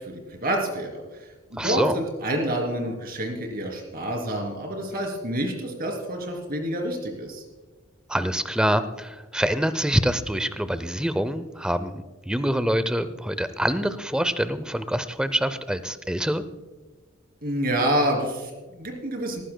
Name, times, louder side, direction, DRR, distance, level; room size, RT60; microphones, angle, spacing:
voice 1, 0.1-0.9 1.5-7.4 17.4-19.4, right 1 dB, 45° right, 2 dB, 2.9 m, -28 dB
voice 2, 1.6-2.0 8.1-16.4, equal, 5° right, 13 dB, 0.5 m, -25 dB
19.0 x 15.0 x 2.2 m, 1.3 s
head